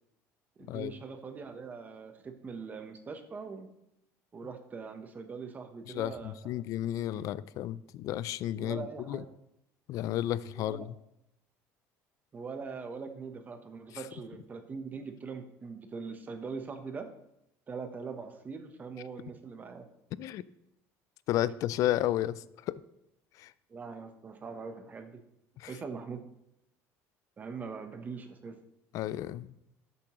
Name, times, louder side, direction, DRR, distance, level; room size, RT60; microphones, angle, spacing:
voice 1, 0.6-3.7 4.3-6.5 8.6-9.3 10.5-10.9 12.3-17.1 17.7-19.9 23.7-25.2 25.7-26.2 27.4-28.6, right 5 dB, 25° right, 1.0 m, -42 dB
voice 2, 5.9-9.2 9.9-10.9 20.2-20.4 21.3-22.8 23.4-23.5 25.6-25.7 28.9-29.5, left 13 dB, 55° left, 0.4 m, -32 dB
13.0 x 6.9 x 3.1 m
cardioid pair, 140°, 7 cm